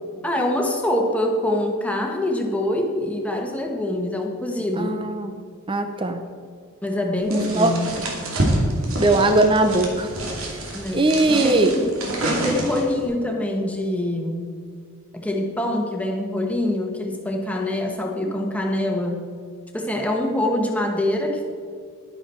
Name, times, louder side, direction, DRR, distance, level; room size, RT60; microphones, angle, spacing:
voice 1, 0.2-5.0 6.8-7.9 10.7-11.9 12.2-14.6 15.1-19.2 19.7-21.4, left 1 dB, 5° left, 1 dB, 1.4 m, -25 dB
voice 2, 4.8-5.3 5.7-6.2 7.3-7.7 9.0-10.1 10.9-11.7, right 2 dB, 25° right, 7 dB, 0.6 m, -19 dB
sound 1, 7.3-13.0, right 1 dB, 70° right, 2.6 m, -27 dB
11.5 x 11.0 x 4.4 m, 2.2 s
head